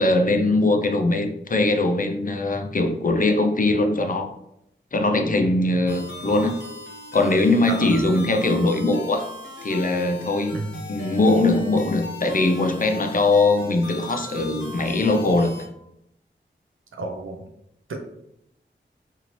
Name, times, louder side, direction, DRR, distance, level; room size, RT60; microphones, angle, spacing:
voice 1, 0.0-4.3 4.9-6.5 7.1-10.5 10.9-15.5, left 2 dB, 45° left, 5 dB, 0.4 m, -21 dB
sound 1, 5.9-15.7, left 2 dB, 65° left, 0.9 m, -39 dB
voice 2, 7.7-8.0 10.5-10.8 16.9-17.5 17.9-18.0, right 3 dB, 90° right, 5 dB, 0.5 m, -31 dB
2.7 x 2.6 x 3.0 m, 0.79 s
wide cardioid pair, 50°, 20 cm